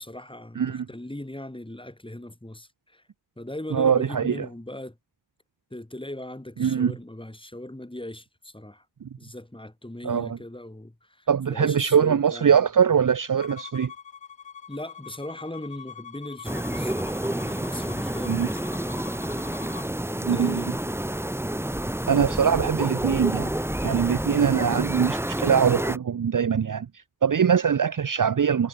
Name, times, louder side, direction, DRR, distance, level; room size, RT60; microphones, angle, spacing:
voice 1, 0.0-3.0 3.4-5.0 5.7-8.8 9.2-12.6 14.7-19.2 20.1-20.7, left 1 dB, 10° left, 6.1 m, -39 dB
voice 2, 0.6-0.9 3.7-4.5 6.6-6.9 9.0-9.1 10.0-10.4 11.3-13.9 18.3-18.5 20.2-20.6 22.1-23.5 23.8-28.7, right 7 dB, 45° right, 0.8 m, -22 dB
Bowed string instrument, 13.4-19.9, left 7 dB, 75° left, 2.3 m, -44 dB
sound 1, 16.4-26.0, right 1 dB, 5° right, 1.1 m, -29 dB
wide cardioid pair, 90°, 44 cm